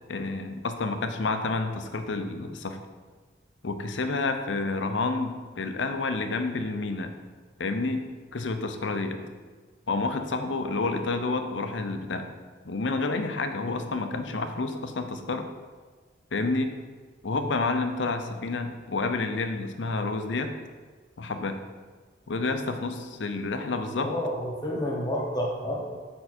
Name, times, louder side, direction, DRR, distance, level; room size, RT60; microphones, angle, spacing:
voice 1, 0.1-2.8 3.6-7.1 7.6-8.0 8.3-9.2 9.9-12.3 12.6-15.5 16.3-16.7 17.2-20.5 21.2-21.6 22.3-24.1, left 3 dB, 70° left, 7 dB, 0.6 m, -29 dB
voice 2, 24.0-26.0, equal, 20° left, -1 dB, 1.2 m, -30 dB
6.7 x 5.5 x 4.3 m, 1.4 s
head